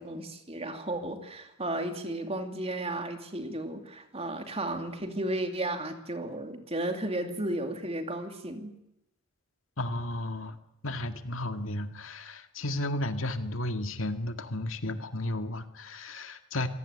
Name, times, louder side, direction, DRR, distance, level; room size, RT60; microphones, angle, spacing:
voice 1, 0.0-8.7, right 1 dB, 30° right, 6 dB, 2.8 m, -34 dB
voice 2, 9.8-10.6 10.8-16.7, left 1 dB, 75° left, 8 dB, 2.0 m, -33 dB
26.0 x 18.0 x 9.6 m, 0.87 s
head